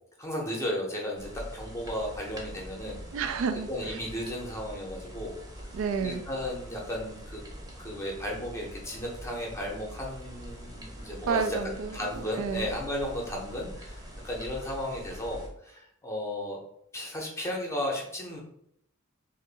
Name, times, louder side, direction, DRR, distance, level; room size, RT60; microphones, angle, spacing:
voice 1, 0.2-3.0 3.7-5.7 6.0-7.4 7.8-11.5 11.9-16.6 16.9-18.4, left 1 dB, 15° left, -2 dB, 0.7 m, -34 dB
sound 1, 1.1-15.5, equal, 20° right, 0.8 m, -44 dB
voice 2, 3.1-4.1 5.7-6.3 11.3-12.7, right 6 dB, 70° right, 9 dB, 0.3 m, -31 dB
2.6 x 2.5 x 3.9 m, 0.72 s
head